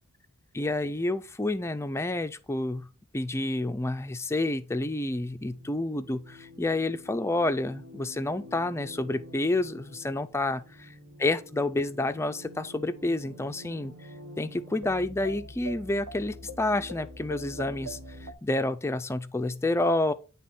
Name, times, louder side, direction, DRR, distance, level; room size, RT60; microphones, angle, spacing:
voice 1, 0.5-2.9 3.1-13.9 14.4-20.1, left 2 dB, 10° left, 0.4 m, -29 dB
sound 1, 5.1-18.3, right 1 dB, 75° right, 1.5 m, -45 dB
10.0 x 3.6 x 4.2 m
head